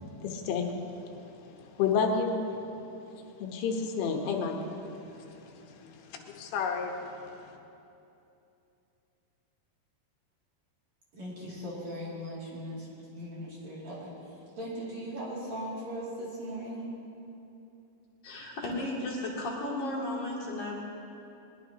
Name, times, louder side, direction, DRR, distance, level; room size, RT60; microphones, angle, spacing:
voice 1, 0.2-0.7 1.8-2.4 3.4-4.6 5.7-6.9, left 5 dB, 85° left, 1 dB, 3.7 m, -30 dB
voice 2, 11.1-12.9 13.1-14.1 14.6-16.9, equal, 45° right, -6 dB, 3.5 m, -38 dB
voice 3, 18.2-20.8, left 1 dB, 50° left, -4 dB, 3.6 m, -34 dB
21.0 x 21.0 x 2.9 m, 2.8 s
omnidirectional pair, 5.1 m